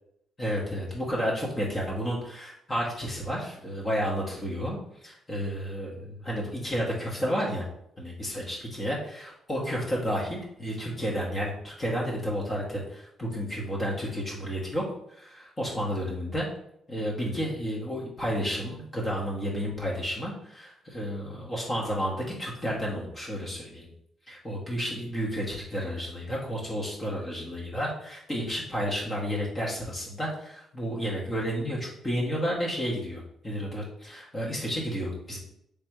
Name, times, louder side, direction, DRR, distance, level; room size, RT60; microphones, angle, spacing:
voice 1, 0.4-7.7 8.0-14.8 15.1-16.5 16.9-23.9 24.3-35.4, equal, 25° left, -4 dB, 1.3 m, -31 dB
3.4 x 3.2 x 4.7 m, 0.74 s
cardioid pair, 90°, 0 cm